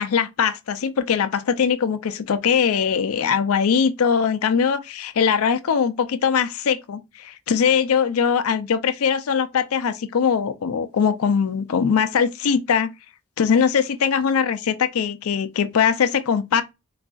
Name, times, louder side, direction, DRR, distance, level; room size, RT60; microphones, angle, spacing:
voice 1, 0.0-12.9 13.4-16.6, left 7 dB, 80° left, 0.4 m, -21 dB
3.9 x 2.5 x 2.3 m
head